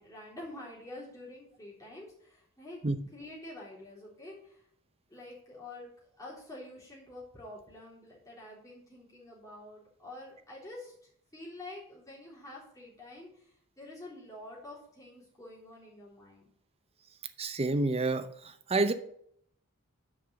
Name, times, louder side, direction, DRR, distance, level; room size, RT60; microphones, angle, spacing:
voice 1, 0.0-2.8 3.1-4.6 5.1-5.9 6.2-10.9 11.3-16.5, left 1 dB, 15° left, -6 dB, 3.6 m, -47 dB
voice 2, 17.4-18.3 18.7-18.9, right 2 dB, 25° right, 10 dB, 0.6 m, -27 dB
6.6 x 5.4 x 6.9 m, 0.66 s
head